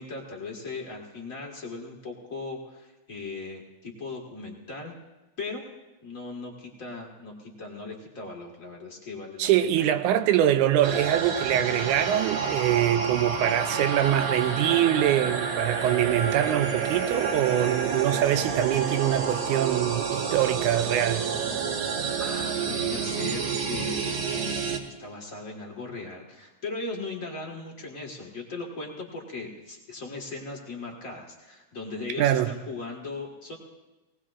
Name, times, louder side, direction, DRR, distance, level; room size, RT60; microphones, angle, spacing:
voice 1, 0.0-4.9 5.4-5.7 6.0-9.8 22.2-33.6, left 3 dB, 35° left, 1.4 m, -38 dB
voice 2, 9.4-21.3 32.2-32.5, right 11 dB, 80° right, 2.0 m, -24 dB
sound 1, 10.8-24.8, right 6 dB, 60° right, 2.2 m, -29 dB
19.0 x 19.0 x 2.5 m
omnidirectional pair, 3.7 m